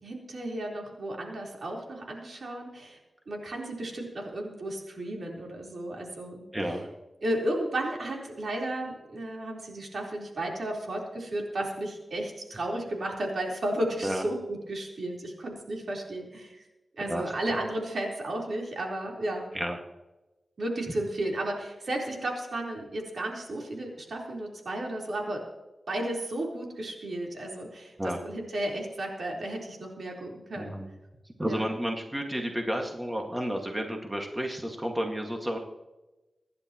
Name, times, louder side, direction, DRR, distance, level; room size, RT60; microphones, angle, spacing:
voice 1, 0.0-3.0 3.3-6.4 7.2-16.6 17.0-19.5 20.6-25.4 25.9-27.9 28.2-30.7 31.5-31.7, right 1 dB, 70° right, -1 dB, 4.1 m, -33 dB
voice 2, 6.5-6.9 14.0-14.2 17.1-17.2 19.5-19.8 28.0-28.2 30.6-30.9 31.4-35.6, equal, 15° right, 1 dB, 1.9 m, -31 dB
26.0 x 11.0 x 3.1 m, 1.0 s
wide cardioid pair, 80°, 0 cm